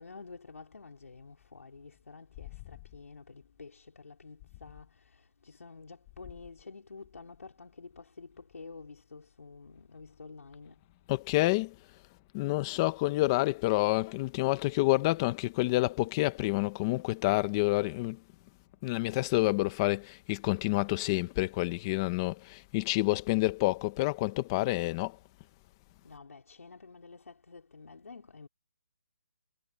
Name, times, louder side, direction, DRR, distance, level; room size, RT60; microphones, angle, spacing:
voice 1, 0.0-10.8 26.0-28.5, left 4 dB, 80° left, 5.0 m, -49 dB
voice 2, 11.1-11.7 12.3-18.2 18.8-25.2, left 20 dB, 15° left, 1.2 m, -28 dB
hypercardioid pair, 170°, 8 cm